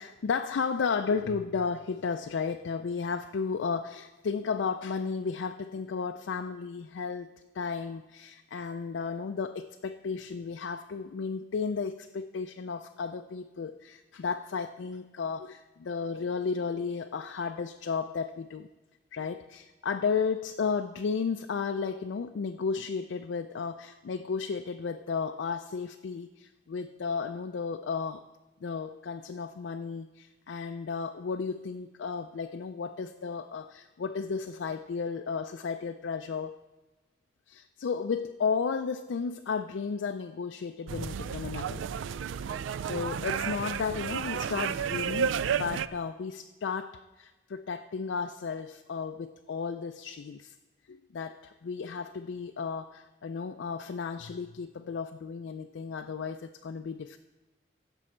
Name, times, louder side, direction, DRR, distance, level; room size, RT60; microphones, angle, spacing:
voice 1, 0.0-7.3 7.5-18.7 19.1-28.2 28.6-36.6 37.5-41.8 42.8-50.5 50.9-57.2, left 5 dB, 70° left, 6 dB, 0.4 m, -33 dB
sound 1, 40.9-45.9, right 7 dB, 75° right, 0.3 m, -32 dB
16.0 x 6.2 x 4.4 m, 1.1 s
head